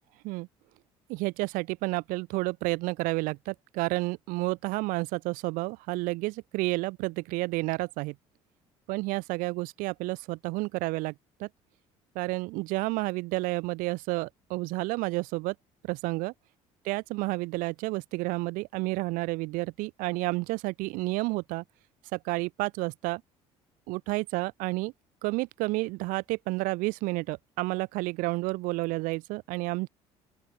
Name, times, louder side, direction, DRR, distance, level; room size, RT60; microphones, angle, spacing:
voice 1, 1.1-8.1 8.9-11.1 11.4-11.5 12.1-15.5 15.8-16.3 16.8-21.6 22.1-23.2 23.9-24.9 25.2-29.9, right 23 dB, 80° right, 3.4 m, -30 dB
open air
supercardioid pair, 70°, 14 cm